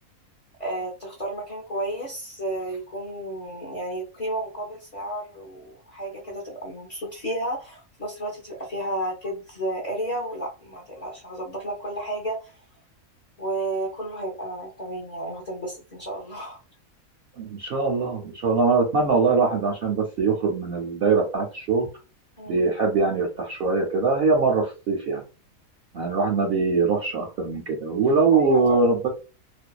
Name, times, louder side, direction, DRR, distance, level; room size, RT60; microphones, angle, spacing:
voice 1, 0.6-12.5 13.4-16.6 22.4-22.6 28.3-28.9, right 1 dB, 40° left, -2 dB, 0.6 m, -32 dB
voice 2, 17.4-21.9 22.5-25.2 25.9-29.1, right 4 dB, 65° right, 0 dB, 0.6 m, -22 dB
2.5 x 2.1 x 2.3 m, 0.31 s
omnidirectional pair, 1.5 m